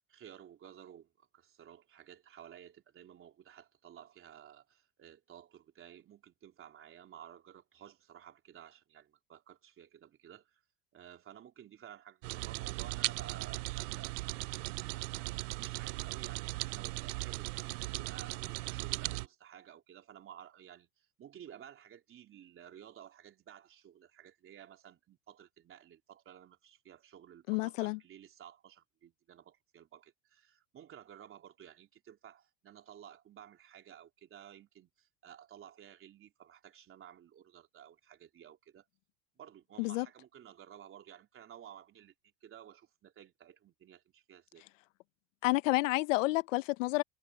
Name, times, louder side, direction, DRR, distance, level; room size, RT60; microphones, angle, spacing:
voice 1, 0.1-10.6 10.9-15.3 15.6-38.8 39.4-44.6, right 10 dB, 35° right, 3.7 m, -54 dB
sound 1, 12.2-19.3, right 23 dB, 75° right, 0.6 m, -38 dB
voice 2, 27.5-28.0 39.8-40.1 45.4-47.0, left 21 dB, 80° left, 1.0 m, -30 dB
supercardioid pair, 120°, 38 cm